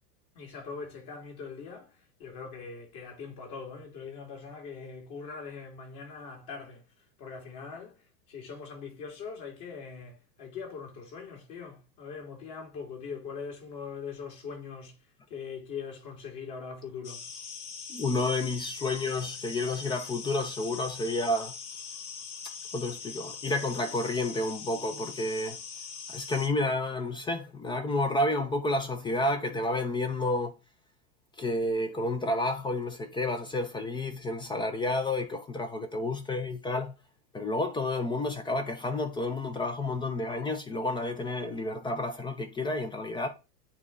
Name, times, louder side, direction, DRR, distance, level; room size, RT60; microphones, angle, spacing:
voice 1, 0.3-17.3, left 5 dB, 45° left, 2.5 m, -42 dB
sound 1, 17.0-26.5, left 6 dB, 70° left, 1.3 m, -42 dB
voice 2, 17.9-21.5 22.7-25.6 26.1-30.5 31.4-36.9 37.3-43.3, left 2 dB, 10° left, 0.4 m, -30 dB
8.7 x 2.9 x 3.7 m
hypercardioid pair, 95°, 49 cm